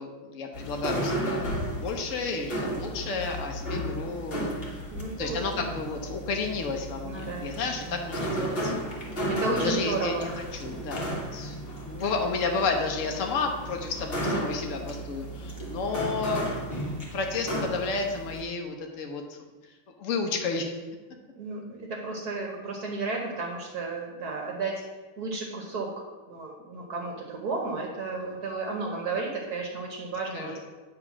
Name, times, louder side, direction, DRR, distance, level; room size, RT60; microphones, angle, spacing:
voice 1, 0.0-4.5 5.2-8.7 9.6-16.5 17.1-19.2 20.0-20.8 30.3-30.6, left 4 dB, 60° left, 2 dB, 0.8 m, -31 dB
sound 1, 0.5-18.4, right 1 dB, 30° left, 1.5 m, -34 dB
voice 2, 4.9-5.6 7.0-7.5 7.8-8.1 9.4-10.3 21.4-24.7 25.2-30.6, right 3 dB, 55° right, 0 dB, 1.4 m, -33 dB
8.8 x 3.6 x 6.0 m, 1.2 s
omnidirectional pair, 2.3 m